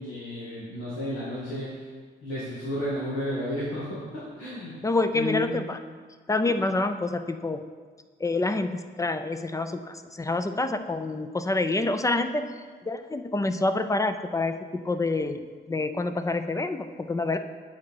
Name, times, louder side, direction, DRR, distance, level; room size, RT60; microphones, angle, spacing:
voice 1, 0.0-1.7 2.2-4.7 5.1-5.5, left 1 dB, 80° left, -10 dB, 2.2 m, -32 dB
voice 2, 4.8-5.8 6.3-7.6 8.2-12.5 12.9-17.4, left 2 dB, 15° left, 9 dB, 0.4 m, -27 dB
8.2 x 4.3 x 4.9 m, 1.5 s
cardioid pair, 90°, 20 cm